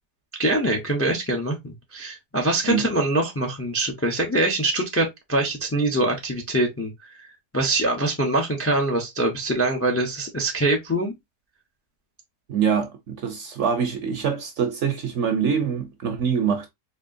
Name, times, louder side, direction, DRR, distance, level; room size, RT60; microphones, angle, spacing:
voice 1, 0.4-7.3 7.5-11.1, right 1 dB, 15° left, 0.4 m, -24 dB
voice 2, 12.5-16.7, right 7 dB, 55° right, 0.9 m, -24 dB
4.3 x 2.8 x 2.5 m
omnidirectional pair, 1.7 m